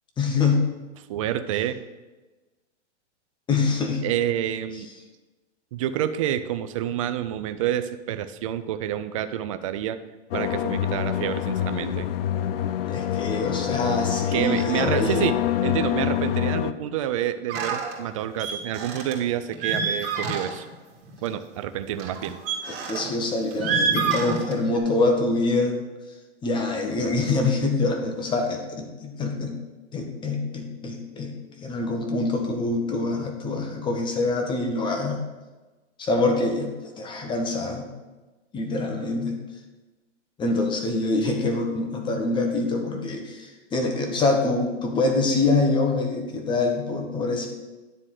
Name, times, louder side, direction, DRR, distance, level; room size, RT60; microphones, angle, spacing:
voice 1, 0.2-0.7 3.5-4.0 12.9-15.2 22.7-25.8 26.4-29.6 29.9-31.3 31.6-35.2 36.0-36.7 37.0-37.9 38.5-39.4 40.4-47.5, left 3 dB, 15° left, 3 dB, 1.0 m, -25 dB
voice 2, 1.1-1.8 4.0-4.9 5.7-10.0 10.3-12.1 14.3-20.7 21.2-22.4, right 11 dB, 30° right, 11 dB, 0.4 m, -28 dB
sound 1, 10.3-16.7, left 11 dB, 55° left, 0.5 m, -26 dB
sound 2, 17.5-18.0 18.4-19.1 19.5-20.7 21.0-21.3 22.0-23.1 23.5-24.8, right 5 dB, 50° right, 2.3 m, -27 dB
9.9 x 3.7 x 6.4 m, 1.2 s
hypercardioid pair, 140°, 36 cm